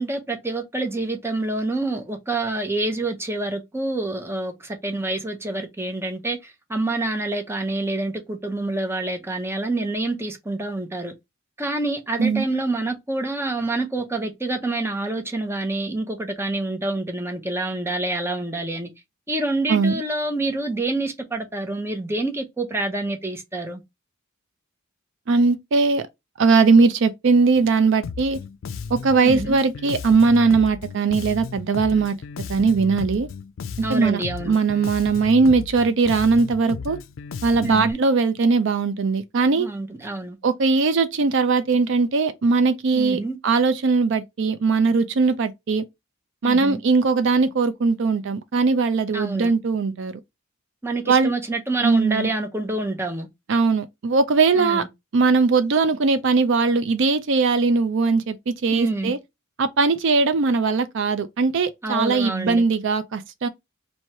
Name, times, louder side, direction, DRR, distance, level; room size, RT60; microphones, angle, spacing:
voice 1, 0.0-11.1 11.6-18.9 19.3-23.8 29.2-29.6 33.8-34.6 37.6-38.0 39.6-40.4 42.9-43.4 46.4-46.8 49.1-49.5 50.8-53.3 54.5-54.9 58.7-59.1 61.8-62.6, right 2 dB, 10° right, 0.7 m, -27 dB
voice 2, 19.7-20.0 25.3-26.1 26.4-28.4 28.9-32.2 32.5-33.3 33.8-37.0 37.4-39.7 40.4-45.8 46.4-50.2 51.1-51.3 51.8-52.3 53.5-54.8 55.1-59.2 59.6-63.5, right 4 dB, 65° right, 0.5 m, -20 dB
Bass guitar, 28.0-37.9, left 5 dB, 70° left, 0.4 m, -34 dB
3.1 x 2.8 x 4.3 m
head